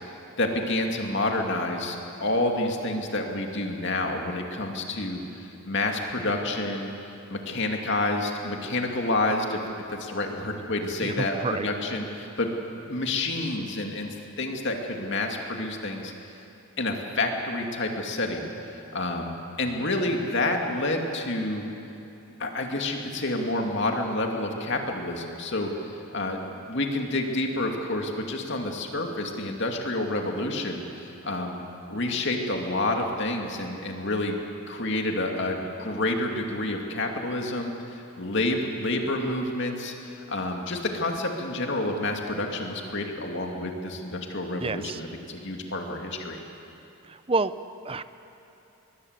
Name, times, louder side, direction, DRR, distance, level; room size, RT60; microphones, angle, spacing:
voice 1, 0.4-6.9 7.3-9.6 10.0-12.5 12.8-14.1 14.4-16.1 16.8-18.5 18.9-21.6 22.4-31.6 31.9-34.4 34.7-37.7 38.2-46.4, left 2 dB, 55° left, 2 dB, 2.4 m, -29 dB
voice 2, 11.0-11.7 44.6-45.0 47.1-47.5 47.8-48.0, right 3 dB, 25° right, 13 dB, 0.6 m, -28 dB
22.5 x 22.0 x 8.1 m, 3.0 s
head